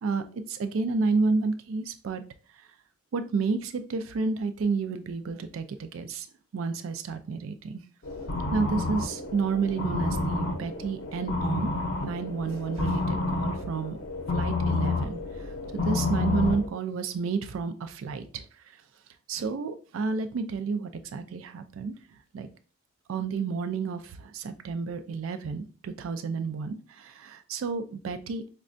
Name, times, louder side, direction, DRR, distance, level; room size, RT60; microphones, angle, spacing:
voice 1, 0.0-2.2 3.1-6.3 6.5-7.8 8.5-11.7 12.0-14.0 14.3-18.8 19.3-21.9 22.3-22.5 23.1-28.5, right 4 dB, 85° right, 9 dB, 0.4 m, -31 dB
sound 1, 8.0-16.7, left 3 dB, 65° left, 0.6 m, -30 dB
5.1 x 2.2 x 2.5 m, 0.38 s
head